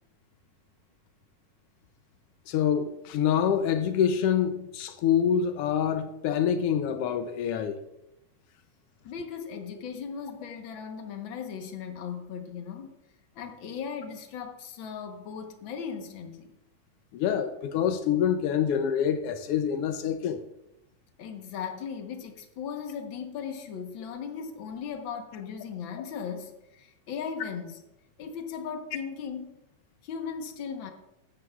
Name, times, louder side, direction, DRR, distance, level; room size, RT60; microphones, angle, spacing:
voice 1, 2.5-7.8 17.1-20.4, left 8 dB, 90° left, 1.3 m, -26 dB
voice 2, 9.0-13.0 13.3-16.5 21.2-27.8 28.2-29.6 30.0-30.9, left 6 dB, 55° left, 1.5 m, -37 dB
14.5 x 12.0 x 2.4 m
omnidirectional pair, 3.4 m